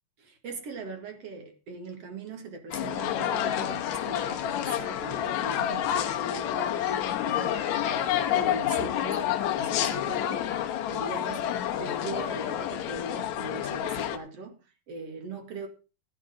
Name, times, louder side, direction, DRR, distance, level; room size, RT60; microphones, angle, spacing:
voice 1, 0.2-9.3 9.6-14.5 14.9-15.7, right 2 dB, 45° right, 2.5 m, -40 dB
sound 1, 2.7-14.2, left 10 dB, 75° left, 1.7 m, -29 dB
17.0 x 9.4 x 3.7 m
omnidirectional pair, 4.5 m